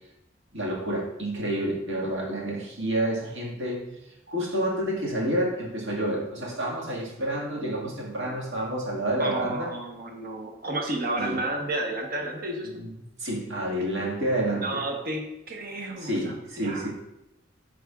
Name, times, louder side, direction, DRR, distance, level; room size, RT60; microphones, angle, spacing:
voice 1, 0.5-3.9 4.3-9.7 11.2-11.4 12.7-14.8 16.0-16.9, right 1 dB, 80° right, -3 dB, 1.8 m, -29 dB
voice 2, 9.2-12.7 14.6-16.9, right 1 dB, 55° right, 2 dB, 1.0 m, -31 dB
8.4 x 4.8 x 2.4 m, 0.88 s
head